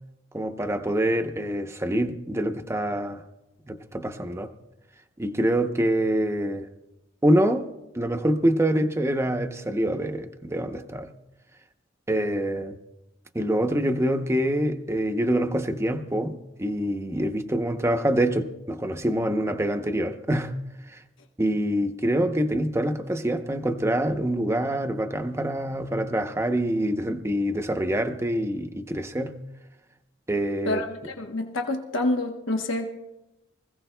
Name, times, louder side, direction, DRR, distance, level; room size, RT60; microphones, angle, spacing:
voice 1, 0.3-3.2 3.7-4.5 5.2-6.7 7.2-7.7 7.9-11.1 12.1-12.8 13.3-20.5 20.9-21.0 21.4-29.4 30.3-30.8, right 1 dB, 15° right, 0.7 m, -25 dB
voice 2, 30.7-32.9, left 2 dB, 80° left, 1.0 m, -27 dB
25.0 x 15.5 x 2.2 m
head